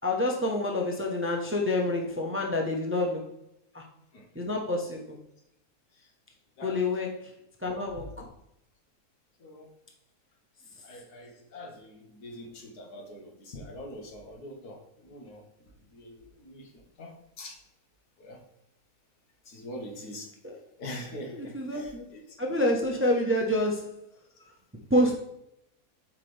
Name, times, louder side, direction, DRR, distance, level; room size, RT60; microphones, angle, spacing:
voice 1, 0.0-3.2 3.7-3.8 4.4-5.1 6.6-7.2 7.6-8.1 20.4-20.6 21.3-22.0 22.4-23.9 24.9-25.2, left 1 dB, 10° right, 1 dB, 0.6 m, -27 dB
voice 2, 10.8-14.8 15.0-15.4 15.9-16.2 16.4-16.7 17.0-17.6 18.2-18.4 19.5-20.3 20.8-22.2 22.5-22.6, left 1 dB, 85° left, 2 dB, 1.8 m, -43 dB
7.5 x 4.9 x 3.3 m, 0.81 s
omnidirectional pair, 1.6 m